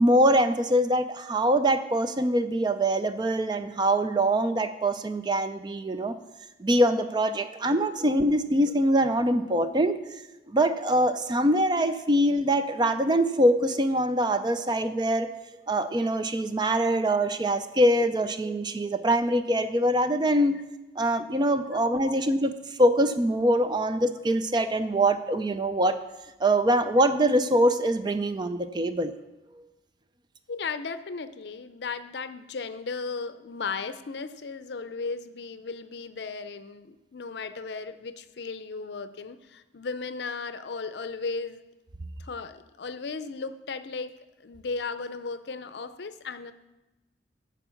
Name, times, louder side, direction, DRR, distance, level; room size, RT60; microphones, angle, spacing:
voice 1, 0.0-6.2 6.6-10.0 10.5-15.3 15.7-20.6 21.0-26.0 26.4-29.1, right 1 dB, 25° right, 10 dB, 0.4 m, -24 dB
voice 2, 21.7-22.1 30.5-41.6 42.2-44.1 44.4-46.5, left 4 dB, 65° left, 12 dB, 0.5 m, -36 dB
11.0 x 4.7 x 7.0 m, 1.0 s
head